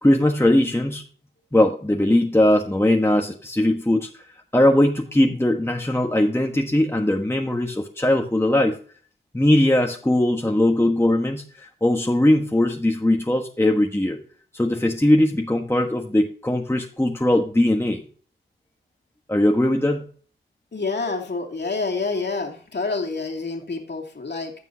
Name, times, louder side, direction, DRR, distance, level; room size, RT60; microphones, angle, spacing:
voice 1, 0.0-1.0 1.5-4.2 4.5-8.8 9.3-14.2 14.5-18.0 19.3-20.1, left 1 dB, 10° left, 2 dB, 1.4 m, -20 dB
voice 2, 20.7-24.5, left 3 dB, 55° left, 1 dB, 2.5 m, -28 dB
15.5 x 5.4 x 2.8 m, 0.43 s
cardioid pair, 40°, 21 cm